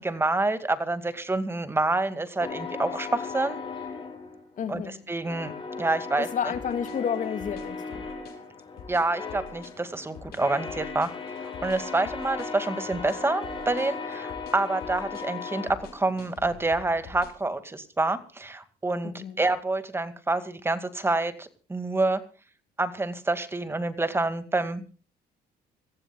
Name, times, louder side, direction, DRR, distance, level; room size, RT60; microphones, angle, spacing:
voice 1, 0.0-3.6 4.7-4.8 5.1-5.5 5.8-6.3 8.9-11.1 11.4-22.2 22.8-25.0, right 2 dB, 15° right, 2.2 m, -27 dB
sound 1, 2.4-4.9 5.2-16.4, left 4 dB, 30° left, 5.2 m, -37 dB
voice 2, 4.6-5.0 6.2-8.1 19.0-19.4, left 8 dB, 50° left, 2.6 m, -31 dB
sound 2, 6.5-17.4, left 5 dB, 65° left, 6.7 m, -46 dB
26.0 x 15.0 x 2.4 m
cardioid pair, 110°, 17 cm